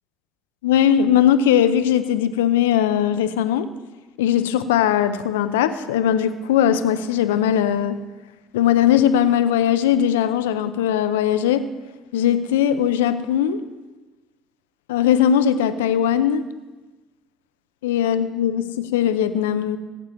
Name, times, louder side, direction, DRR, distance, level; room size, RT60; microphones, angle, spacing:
voice 1, 0.6-3.7 4.2-8.0 8.5-11.6 12.1-13.6 14.9-16.4 17.8-19.8, left 9 dB, 80° left, 11 dB, 0.7 m, -19 dB
20.0 x 8.2 x 3.1 m, 1.2 s
hypercardioid pair, 60°, 0 cm